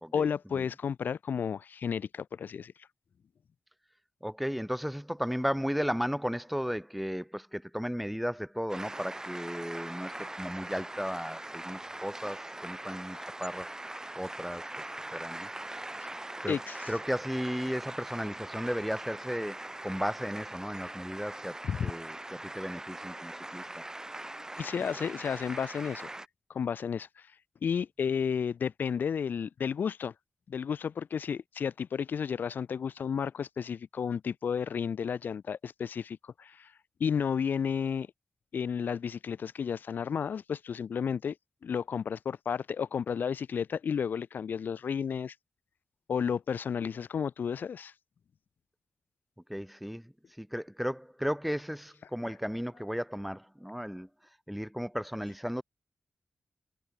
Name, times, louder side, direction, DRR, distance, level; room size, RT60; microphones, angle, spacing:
voice 1, 0.1-2.7 16.5-16.9 21.6-21.9 24.6-26.1 26.5-27.1 27.6-30.1 30.5-36.7 37.0-38.1 38.5-41.3 41.6-45.3 46.1-47.9 52.3-52.4, left 7 dB, 90° left, 0.8 m, -32 dB
voice 2, 4.2-13.7 14.2-14.7 15.1-15.5 16.4-16.6 16.9-21.5 21.8-22.2 22.5-23.6 49.5-50.1 50.4-54.1 54.5-55.6, equal, ahead, 1.5 m, -35 dB
sound 1, 8.7-26.3, right 1 dB, 20° right, 3.2 m, -42 dB
wide cardioid pair, 75°, 3 cm